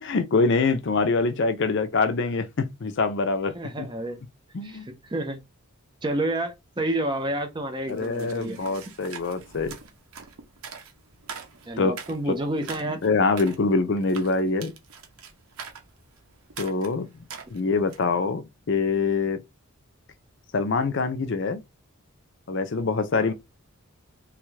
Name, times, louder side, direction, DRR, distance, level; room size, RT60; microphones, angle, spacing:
voice 1, 0.0-3.9 4.5-4.9 7.9-9.8 11.8-11.9 13.0-14.7 16.6-17.1 17.5-19.4 20.5-21.6 22.5-23.3, left 4 dB, 55° left, 0.5 m, -24 dB
voice 2, 3.5-4.2 4.6-5.4 6.0-8.6 11.7-13.0 23.1-23.3, right 1 dB, 20° right, 0.6 m, -29 dB
sound 1, 7.9-18.1, right 6 dB, 80° right, 0.7 m, -44 dB
3.1 x 2.4 x 3.1 m
head